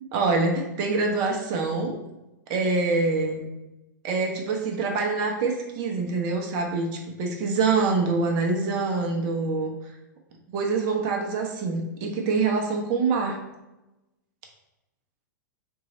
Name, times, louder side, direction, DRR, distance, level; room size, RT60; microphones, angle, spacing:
voice 1, 0.1-2.0 2.5-3.5 4.0-6.9 7.2-9.7 10.5-13.4, right 4 dB, 40° right, 1 dB, 0.9 m, -25 dB
3.7 x 3.1 x 4.0 m, 0.99 s
hypercardioid pair, 120°, 10 cm